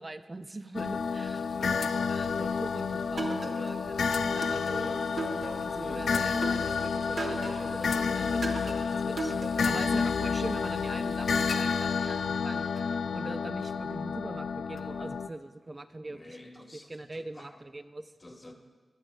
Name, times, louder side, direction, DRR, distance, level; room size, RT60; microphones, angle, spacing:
voice 1, 0.0-5.0 5.6-8.4 8.7-9.4 9.6-16.4 16.7-18.1, right 2 dB, 25° right, 11 dB, 0.4 m, -42 dB
sound 1, 0.7-15.3, left 5 dB, 75° left, 0.3 m, -30 dB
voice 2, 1.5-2.0 4.7-5.2 5.8-6.2 8.1-8.5 16.1-17.6 18.2-18.5, left 1 dB, 25° left, 3 dB, 1.0 m, -48 dB
sound 2, 3.2-3.9 4.4-5.9 6.4-7.8 8.4-9.9, right 3 dB, 60° right, 0.9 m, -37 dB
20.5 x 7.1 x 2.2 m, 1.4 s
wide cardioid pair, 110°, 0 cm